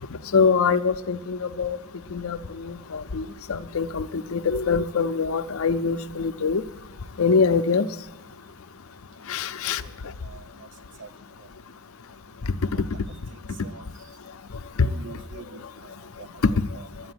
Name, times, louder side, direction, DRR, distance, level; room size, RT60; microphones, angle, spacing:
voice 1, 0.3-1.8 2.1-6.6 7.2-7.9 9.3-9.8 12.7-12.8 14.8-14.9, left 5 dB, 70° left, 11 dB, 0.6 m, -24 dB
voice 2, 14.8-15.6 16.2-16.9, right 5 dB, 55° right, 10 dB, 0.7 m, -43 dB
12.0 x 8.6 x 9.7 m, 1.0 s
head